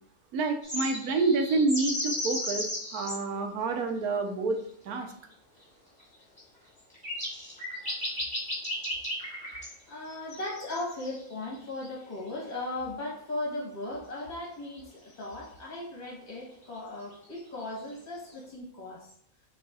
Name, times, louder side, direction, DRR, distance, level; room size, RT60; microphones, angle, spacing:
voice 1, 0.3-2.7 2.9-4.6 4.8-5.1, right 3 dB, 90° right, 4 dB, 1.2 m, -28 dB
sound 1, 0.6-3.2 5.0-5.1 6.4-6.5 6.9-9.7 10.1-11.4 11.8-11.9 14.4-14.5 14.7-14.8 17.1-17.6, left 1 dB, 5° left, 1.8 m, -35 dB
voice 2, 9.9-19.1, left 2 dB, 30° left, -4 dB, 1.3 m, -37 dB
7.1 x 3.2 x 2.4 m, 0.66 s
omnidirectional pair, 1.5 m